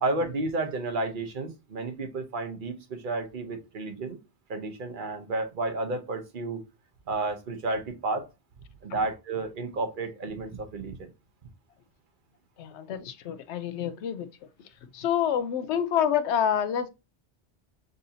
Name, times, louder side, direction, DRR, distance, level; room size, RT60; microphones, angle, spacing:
voice 1, 0.0-4.2 4.5-6.6 7.1-8.3 8.8-11.1, right 2 dB, 50° right, 0.9 m, -31 dB
voice 2, 12.6-14.3 14.9-16.9, left 9 dB, 75° left, 0.9 m, -27 dB
6.6 x 2.7 x 2.7 m
omnidirectional pair, 1.2 m